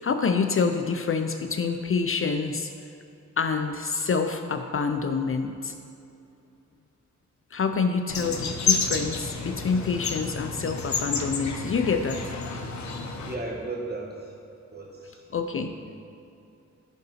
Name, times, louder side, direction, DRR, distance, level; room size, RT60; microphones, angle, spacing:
voice 1, 0.0-2.7 3.4-5.7 7.5-12.2 15.3-15.7, left 5 dB, 45° left, 7 dB, 0.5 m, -27 dB
sound 1, 8.1-13.4, left 5 dB, 65° left, 0.8 m, -30 dB
voice 2, 13.2-14.4 14.7-16.0, right 2 dB, 30° right, -1 dB, 1.5 m, -37 dB
11.0 x 3.9 x 4.1 m, 2.6 s
cardioid pair, 65°, 31 cm